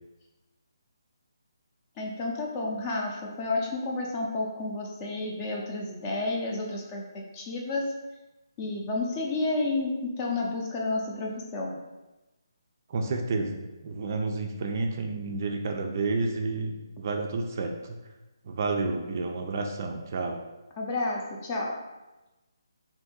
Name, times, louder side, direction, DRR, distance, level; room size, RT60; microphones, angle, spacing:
voice 1, 2.0-7.0 7.3-7.9 8.6-11.8 20.8-21.7, left 2 dB, 25° left, -1 dB, 0.5 m, -31 dB
voice 2, 12.9-18.0 18.5-20.4, right 3 dB, 40° right, 3 dB, 0.3 m, -30 dB
2.6 x 2.6 x 3.8 m, 1.1 s
hypercardioid pair, 155°, 2 cm